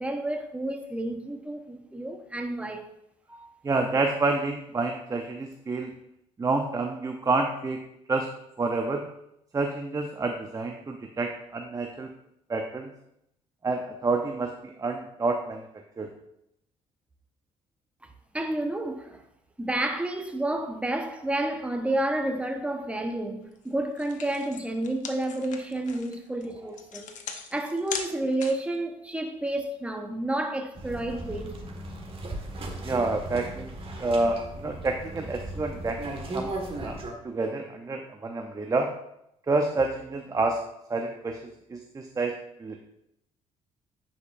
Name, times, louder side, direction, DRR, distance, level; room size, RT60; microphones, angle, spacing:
voice 1, 0.0-2.9 3.3-3.5 18.3-19.2 19.6-27.1 27.5-31.6, right 1 dB, 10° right, 1.1 m, -30 dB
voice 2, 3.6-5.9 6.4-7.8 8.1-8.3 8.6-9.0 9.5-12.1 12.5-12.9 13.6-15.7 16.0-16.1 32.8-33.7 34.0-36.5 36.8-37.0 37.2-38.9 39.5-40.6 40.9-41.4 41.7-42.3 42.6-42.8, right 3 dB, 25° right, 0.7 m, -28 dB
sound 1, 23.6-23.7 24.0-28.8, left 6 dB, 60° left, 0.9 m, -39 dB
sound 2, 30.7-37.1, right 1 dB, 40° right, 1.7 m, -37 dB
9.5 x 5.3 x 2.6 m
supercardioid pair, 65°, 14 cm